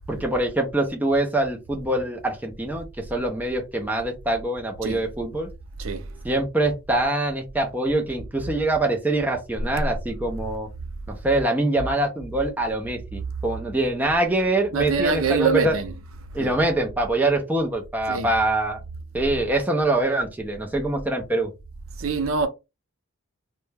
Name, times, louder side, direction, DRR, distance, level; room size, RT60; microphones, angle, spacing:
voice 1, 0.1-5.5 6.2-10.7 11.1-15.7 16.3-18.8 19.1-21.5, right 2 dB, 10° right, 0.4 m, -24 dB
voice 2, 5.8-6.2 14.7-15.9 16.3-16.5 18.1-18.3 22.0-22.5, right 5 dB, 70° right, 0.5 m, -24 dB
2.2 x 2.1 x 3.2 m
head